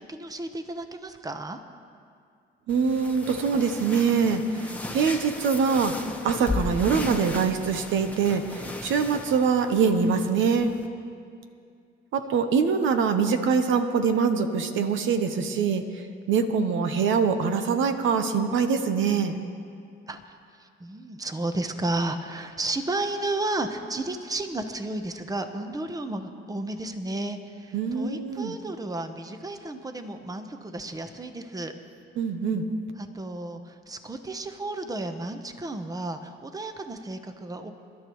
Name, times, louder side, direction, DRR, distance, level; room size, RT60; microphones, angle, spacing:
voice 1, 0.1-1.6 20.1-20.3 20.6-31.7 33.0-37.7, right 2 dB, 20° right, 7 dB, 1.0 m, -33 dB
sound 1, 2.7-10.9, left 2 dB, 5° left, 1.2 m, -36 dB
voice 2, 2.7-10.7 12.1-15.8 16.3-19.4 27.7-28.5 32.2-32.7, right 5 dB, 75° right, 7 dB, 1.0 m, -24 dB
28.5 x 11.5 x 3.1 m, 2.3 s
cardioid pair, 90°, 20 cm